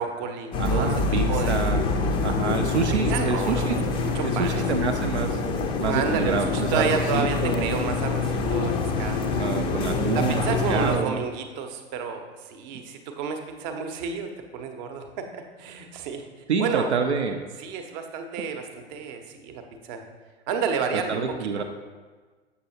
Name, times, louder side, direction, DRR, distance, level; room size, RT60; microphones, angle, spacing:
voice 1, 0.0-1.0 1.3-1.6 2.9-3.7 4.0-4.6 5.8-9.3 10.1-16.3 16.6-16.9 17.6-20.0 20.5-21.2 21.6-21.7, right 6 dB, 40° right, 6 dB, 0.8 m, -31 dB
sound 1, 0.5-11.0, left 3 dB, 15° left, 0.4 m, -26 dB
voice 2, 0.6-1.8 2.2-3.9 4.2-5.4 5.8-7.8 9.3-10.4 10.7-11.2 16.5-17.4 20.9-21.6, right 5 dB, 75° right, 5 dB, 0.6 m, -27 dB
6.8 x 6.7 x 2.7 m, 1.4 s
figure-of-eight pair, 95°, 33 cm